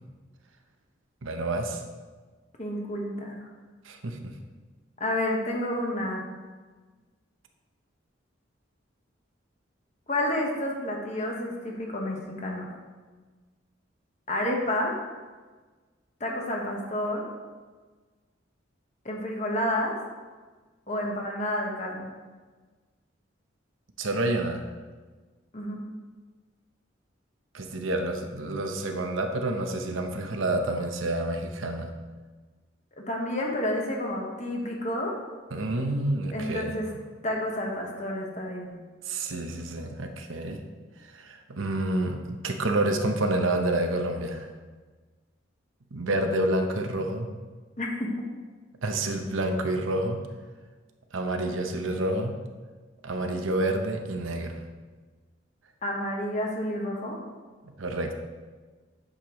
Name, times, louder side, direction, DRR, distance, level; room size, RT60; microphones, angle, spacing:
voice 1, 1.2-1.8 3.8-4.3 24.0-24.7 27.5-31.9 35.5-36.8 39.0-40.6 41.0-44.5 45.9-47.3 48.8-50.2 51.1-52.3 53.0-54.6 57.8-58.1, right 1 dB, 85° right, 4 dB, 0.8 m, -28 dB
voice 2, 2.6-3.4 5.0-6.3 10.1-12.7 14.3-14.9 16.2-17.3 19.0-20.0 20.9-22.1 25.5-25.8 33.0-35.2 36.3-36.9 37.2-38.8 47.8-48.1 55.8-57.2, left 1 dB, 35° left, 0 dB, 1.2 m, -30 dB
8.8 x 6.6 x 3.1 m, 1.4 s
head